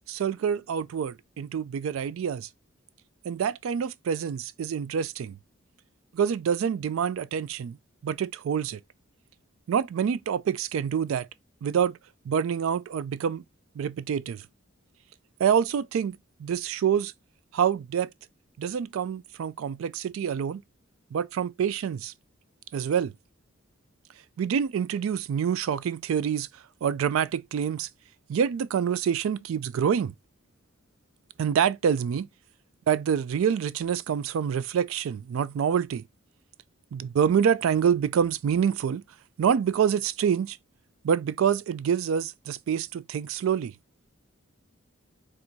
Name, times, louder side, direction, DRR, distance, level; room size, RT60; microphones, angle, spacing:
voice 1, 0.1-2.5 3.2-5.4 6.1-7.8 8.0-8.8 9.7-11.3 11.6-12.0 12.3-13.4 13.8-14.4 15.4-17.1 17.5-18.1 18.6-20.6 21.1-22.1 22.7-23.1 24.4-26.5 26.8-27.9 28.3-30.1 31.4-32.3 32.9-36.0 36.9-39.0 39.4-40.6 41.0-43.7, right 8 dB, 85° right, 0.3 m, -26 dB
4.5 x 2.5 x 3.9 m
head